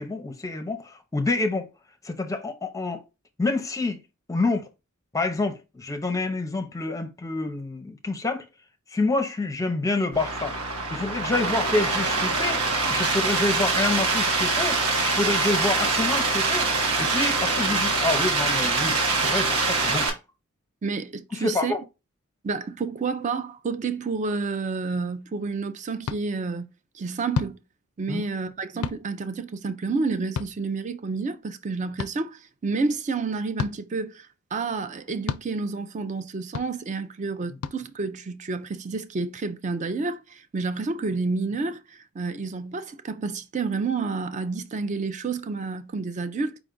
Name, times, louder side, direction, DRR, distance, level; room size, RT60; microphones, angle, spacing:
voice 1, 0.0-1.7 2.0-3.0 3.4-4.0 4.3-4.7 5.1-8.4 8.9-10.5 10.9-16.7 17.0-20.1 21.3-21.8 28.1-28.2, left 2 dB, 15° left, 0.6 m, -27 dB
sound 1, 10.1-20.1, right 3 dB, 90° right, 1.2 m, -24 dB
voice 2, 20.8-21.7 22.4-26.7 26.9-27.6 28.0-46.6, right 4 dB, 35° right, 0.4 m, -30 dB
sound 2, 26.0-26.2 27.3-27.6 28.8-29.0 30.4-30.5 32.0-32.1 33.6-33.8 35.3-35.4 36.5-36.7 37.6-37.8, left 6 dB, 85° left, 0.4 m, -29 dB
4.9 x 2.3 x 3.8 m
head